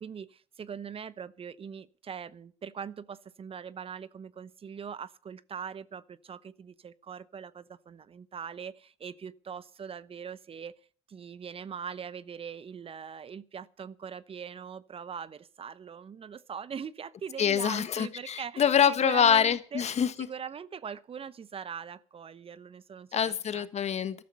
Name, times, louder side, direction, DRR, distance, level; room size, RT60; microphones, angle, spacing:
voice 1, 0.0-10.7 11.1-19.8 20.2-23.7, right 7 dB, 40° right, 0.9 m, -41 dB
voice 2, 17.4-20.3 23.1-24.2, left 8 dB, 45° left, 1.5 m, -25 dB
14.5 x 13.0 x 5.4 m
hypercardioid pair, 60°, 15 cm